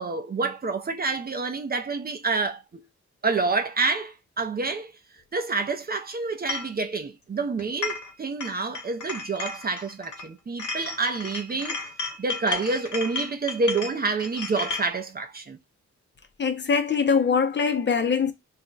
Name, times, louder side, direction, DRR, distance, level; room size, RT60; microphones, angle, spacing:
voice 1, 0.0-2.8 3.2-4.9 5.3-11.8 12.2-15.6, right 3 dB, 30° right, 0.5 m, -28 dB
sound 1, 6.5-6.7 7.6-8.1 8.4-10.3 10.6-14.9, left 4 dB, 80° left, 0.9 m, -33 dB
voice 2, 16.4-18.3, left 6 dB, 40° left, 0.5 m, -22 dB
2.5 x 2.1 x 3.7 m
wide cardioid pair, 105°, 30 cm